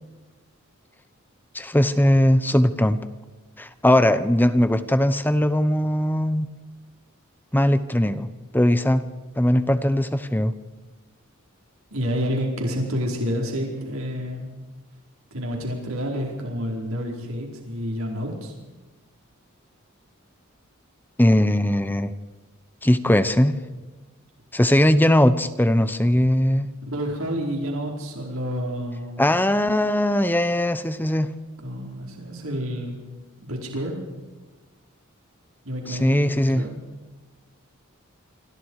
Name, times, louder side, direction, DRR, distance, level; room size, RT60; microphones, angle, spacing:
voice 1, 1.5-3.0 3.6-6.5 7.5-8.3 8.5-9.0 9.4-10.5 21.2-22.1 22.8-23.6 24.5-26.7 29.2-31.3 35.9-36.6, left 1 dB, 10° left, 12 dB, 0.9 m, -19 dB
voice 2, 11.9-14.5 15.3-18.5 26.8-29.2 31.6-33.0 33.4-34.0 35.6-36.2 36.5-36.8, equal, 85° right, 0 dB, 4.8 m, -29 dB
27.0 x 26.5 x 4.9 m, 1.2 s
head